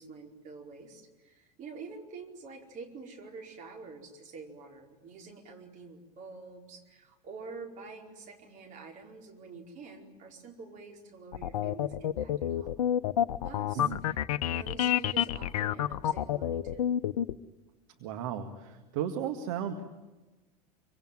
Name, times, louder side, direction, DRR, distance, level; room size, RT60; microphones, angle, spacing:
voice 1, 0.0-12.8 13.4-13.9 14.5-16.9, right 4 dB, 40° right, 2 dB, 4.9 m, -47 dB
sound 1, 11.3-17.3, left 10 dB, 60° left, 0.8 m, -29 dB
voice 2, 18.0-19.8, right 8 dB, 55° right, 6 dB, 1.9 m, -35 dB
26.0 x 24.5 x 9.2 m, 1.1 s
figure-of-eight pair, 80°, 21 cm